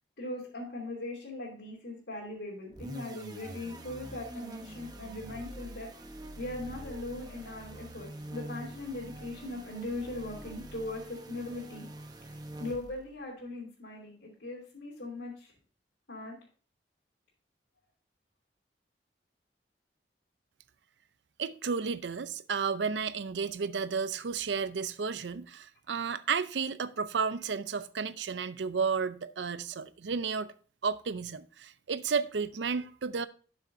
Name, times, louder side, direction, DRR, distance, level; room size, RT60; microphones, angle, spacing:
voice 1, 0.2-5.9 6.4-11.8 12.6-15.5 16.1-16.3, left 2 dB, 85° left, 3.0 m, -39 dB
sound 1, 2.7-13.1, right 1 dB, 25° right, 0.8 m, -45 dB
voice 2, 21.4-30.5 30.8-33.3, right 5 dB, 85° right, 0.5 m, -32 dB
11.5 x 6.5 x 2.7 m
head